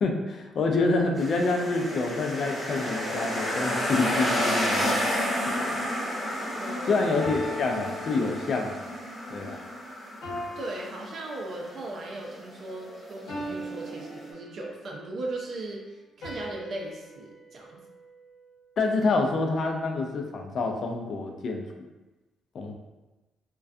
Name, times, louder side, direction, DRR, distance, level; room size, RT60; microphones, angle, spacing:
voice 1, 0.0-4.9 5.7-5.8 6.9-8.8 9.3-9.6 18.8-21.9 22.5-22.7, left 3 dB, 55° left, 3 dB, 0.4 m, -27 dB
sound 1, 1.2-14.3, equal, 10° left, 0.8 m, -31 dB
voice 2, 6.5-7.0 10.6-17.8, right 2 dB, 60° right, -1 dB, 0.4 m, -37 dB
sound 2, 7.2-8.8 10.2-11.9 13.3-14.9 16.2-18.6, left 1 dB, 85° left, 0.8 m, -40 dB
2.4 x 2.2 x 2.4 m, 1.1 s
cardioid pair, 90°, 0 cm